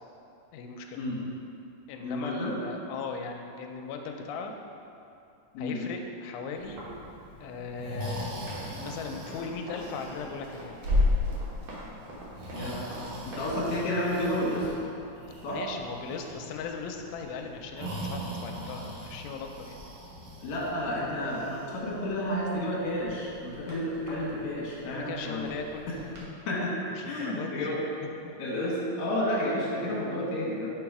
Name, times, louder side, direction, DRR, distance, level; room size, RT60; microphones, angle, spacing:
voice 1, 0.5-1.0 1.9-4.5 5.6-6.8 7.4-8.4 8.7-10.8 15.5-19.8 24.8-25.9 27.0-27.7 28.0-28.3, left 5 dB, 80° left, 3 dB, 2.3 m, -38 dB
voice 2, 2.0-2.6 5.5-5.8 12.5-12.9 13.3-14.7 15.4-15.6 20.4-25.5 25.9-26.0 26.5-26.7 27.0-27.8 28.4-30.7, left 1 dB, 60° left, -5 dB, 2.1 m, -31 dB
Breathing, 6.6-26.3, left 1 dB, 75° right, 1.5 m, -37 dB
Run, 8.5-14.7, right 1 dB, 60° right, 1.7 m, -44 dB
5.9 x 3.9 x 4.7 m, 2.7 s
omnidirectional pair, 4.4 m